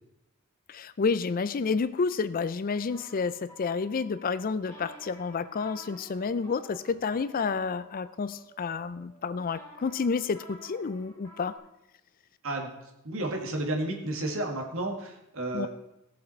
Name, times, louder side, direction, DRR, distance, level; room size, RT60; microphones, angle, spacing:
voice 1, 0.7-11.5 15.5-15.7, left 5 dB, 40° left, 15 dB, 0.4 m, -30 dB
sound 1, 2.7-11.6, equal, 15° left, 5.5 m, -52 dB
voice 2, 13.0-15.7, right 2 dB, 65° right, 1 dB, 2.2 m, -32 dB
18.0 x 7.3 x 4.5 m, 0.89 s
head